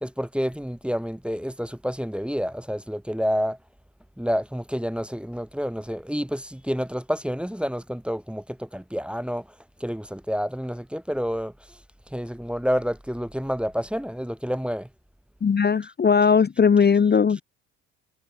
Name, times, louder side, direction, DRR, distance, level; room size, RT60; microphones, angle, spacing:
voice 1, 0.0-3.6 4.2-8.4 8.7-9.4 9.8-11.5 12.1-14.8, equal, 5° right, 1.3 m, -28 dB
voice 2, 15.4-17.4, left 6 dB, 25° left, 1.0 m, -19 dB
hypercardioid pair, 55°, 38 cm